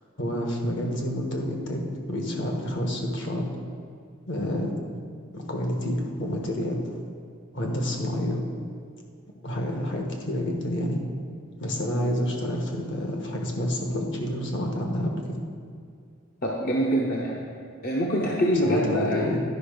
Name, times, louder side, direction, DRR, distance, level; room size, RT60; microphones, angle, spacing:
voice 1, 0.2-3.6 4.3-4.7 5.3-7.0 7.5-8.4 9.4-11.0 11.6-15.4 18.6-19.4, left 1 dB, 60° left, 1 dB, 1.4 m, -28 dB
voice 2, 16.4-17.4 17.8-19.3, equal, 45° left, -3 dB, 0.8 m, -24 dB
11.0 x 5.4 x 5.0 m, 2.3 s
head